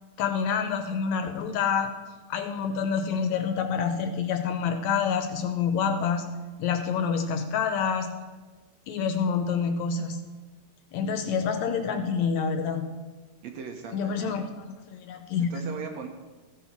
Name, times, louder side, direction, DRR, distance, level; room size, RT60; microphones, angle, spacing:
voice 1, 0.2-1.9 2.3-6.3 6.6-8.1 8.9-10.2 10.9-12.8 13.9-15.5, left 6 dB, 75° left, 6 dB, 2.0 m, -27 dB
voice 2, 13.4-14.4 15.4-16.1, right 6 dB, 70° right, 3 dB, 2.0 m, -38 dB
14.0 x 5.7 x 5.9 m, 1.3 s
omnidirectional pair, 3.5 m